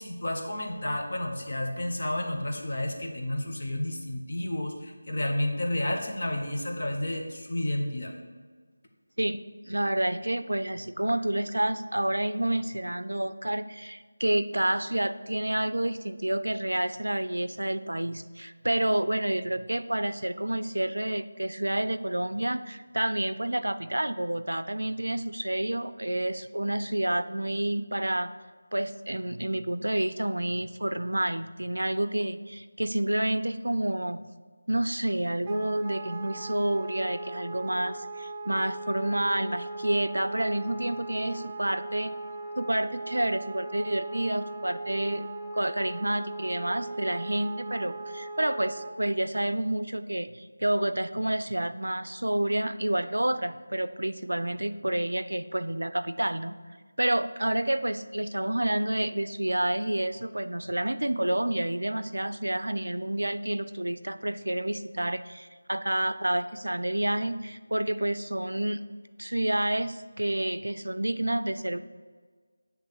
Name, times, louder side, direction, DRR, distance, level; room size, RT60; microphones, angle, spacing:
voice 1, 0.0-8.1, left 1 dB, 50° left, 1 dB, 1.2 m, -31 dB
voice 2, 9.2-28.3 28.7-34.2 34.7-42.1 42.6-45.3 45.5-56.6 57.0-68.8 69.2-71.8, right 1 dB, 80° right, 12 dB, 0.4 m, -29 dB
Wind instrument woodwind instrument, 35.5-48.9, right 2 dB, 20° right, 0.5 m, -39 dB
8.1 x 3.4 x 6.6 m, 1.5 s
figure-of-eight pair, 165°, 0 cm